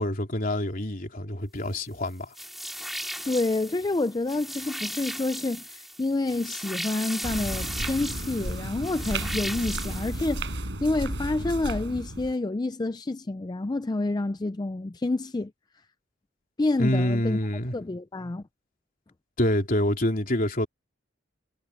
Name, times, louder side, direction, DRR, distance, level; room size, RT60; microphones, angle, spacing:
voice 1, 0.0-2.3 16.8-17.7 19.4-20.7, left 1 dB, 45° left, 3.5 m, -26 dB
sound 1, 2.3-10.5, equal, ahead, 2.5 m, -37 dB
voice 2, 3.3-10.5 10.8-15.5 16.6-17.4 17.7-18.4, left 2 dB, 20° left, 0.4 m, -28 dB
sound 2, 7.2-12.3, right 1 dB, 70° right, 5.3 m, -33 dB
head